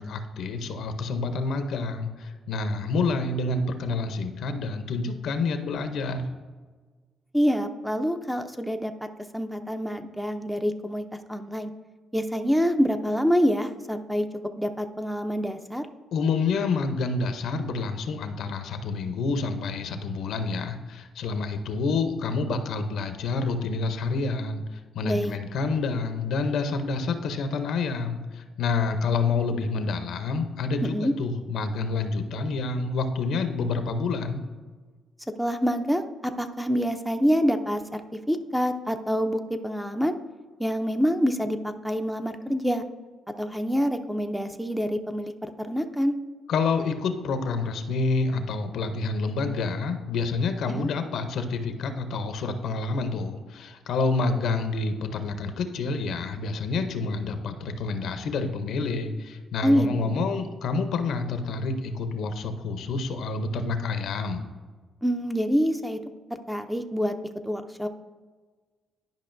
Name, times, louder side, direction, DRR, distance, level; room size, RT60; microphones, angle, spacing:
voice 1, 0.0-6.3 16.1-34.4 46.5-64.4, left 4 dB, 75° left, 8 dB, 0.7 m, -28 dB
voice 2, 7.3-8.9 9.3-11.7 12.1-14.3 14.6-15.9 25.0-25.4 30.8-31.1 35.4-38.0 38.3-40.1 40.6-42.8 43.4-46.2 50.7-50.9 59.6-60.3 65.0-66.0 66.3-67.1 67.4-67.9, equal, 5° right, 7 dB, 0.5 m, -26 dB
10.5 x 5.2 x 2.6 m, 1.4 s
cardioid pair, 90°, 0 cm